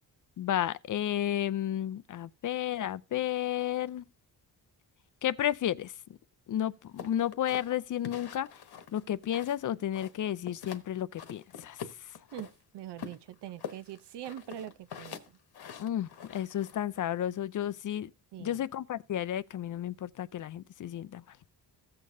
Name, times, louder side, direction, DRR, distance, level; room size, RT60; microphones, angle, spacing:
voice 1, 0.4-4.0 5.2-5.9 6.5-8.6 8.9-12.1 15.8-18.1 18.4-21.4, left 11 dB, 50° left, 0.4 m, -32 dB
sound 1, 7.0-9.7 9.9-10.9 11.2-12.5 13.0-16.8, left 8 dB, 65° left, 1.2 m, -44 dB
voice 2, 12.3-15.2 18.3-18.6, right 11 dB, 75° right, 0.7 m, -43 dB
15.0 x 6.6 x 2.7 m
cardioid pair, 110°, 41 cm